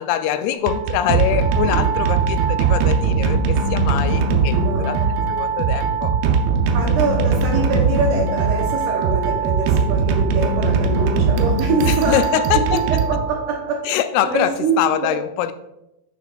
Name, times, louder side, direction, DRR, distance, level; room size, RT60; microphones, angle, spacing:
voice 1, 0.0-5.0 5.3-6.2 11.9-12.8 13.9-15.5, left 11 dB, 90° left, 10 dB, 2.5 m, -23 dB
sound 1, 0.5-13.7, right 5 dB, 90° right, 2.7 m, -20 dB
voice 2, 4.5-5.1 6.7-12.6 12.9-13.8 14.2-15.2, right 4 dB, 75° right, 0 dB, 2.0 m, -24 dB
8.7 x 5.9 x 2.3 m, 0.87 s
omnidirectional pair, 4.4 m